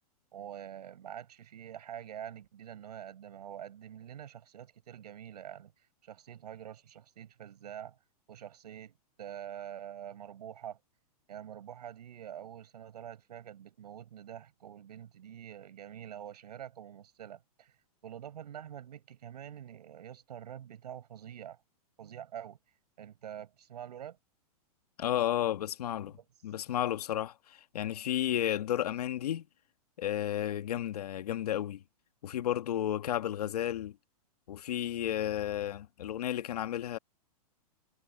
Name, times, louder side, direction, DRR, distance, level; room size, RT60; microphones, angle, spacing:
voice 1, 0.3-5.7 6.0-8.0 8.3-10.8 11.3-17.7 18.0-21.6 22.0-22.6 23.0-24.2 26.2-26.3, right 10 dB, 85° right, 6.9 m, -46 dB
voice 2, 25.0-26.2 26.4-29.5 30.0-31.8 32.2-33.9 34.5-37.0, left 11 dB, 70° left, 1.5 m, -32 dB
supercardioid pair, 170°, 20 cm